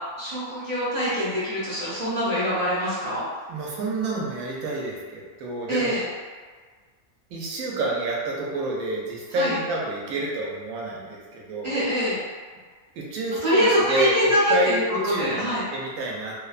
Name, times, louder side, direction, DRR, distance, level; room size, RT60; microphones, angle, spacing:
voice 1, 0.2-3.2 5.7-6.0 9.3-9.6 11.6-12.2 13.4-15.6, equal, 40° right, -12 dB, 0.7 m, -24 dB
voice 2, 3.5-5.9 7.3-11.7 13.0-16.3, right 2 dB, 85° right, -3 dB, 1.1 m, -28 dB
2.8 x 2.1 x 2.3 m, 1.5 s
omnidirectional pair, 1.4 m